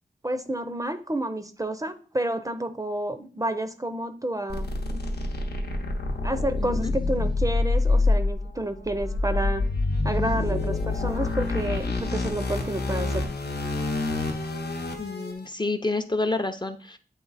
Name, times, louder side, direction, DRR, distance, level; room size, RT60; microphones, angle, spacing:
voice 1, 0.2-5.0 6.2-9.6 10.0-13.3, right 1 dB, 20° right, 9 dB, 0.5 m, -30 dB
sound 1, 4.5-15.3, left 2 dB, 85° left, 0.9 m, -27 dB
voice 2, 6.6-6.9 15.0-17.0, left 2 dB, 25° left, 7 dB, 0.6 m, -29 dB
8.4 x 2.8 x 4.0 m, 0.39 s
wide cardioid pair, 70°, 16 cm